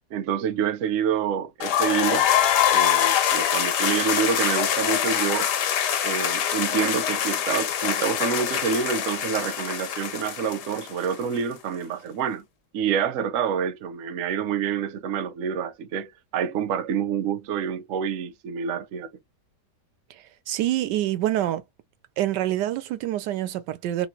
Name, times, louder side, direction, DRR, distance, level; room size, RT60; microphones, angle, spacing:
voice 1, 0.1-2.3 2.7-5.5 6.0-12.4 12.7-19.1, right 7 dB, 65° right, 0.8 m, -27 dB
sound 1, 1.6-11.4, left 10 dB, 80° left, 1.4 m, -24 dB
voice 2, 20.5-21.6 22.2-24.1, right 13 dB, 85° right, 1.2 m, -26 dB
3.1 x 2.9 x 2.3 m
omnidirectional pair, 1.8 m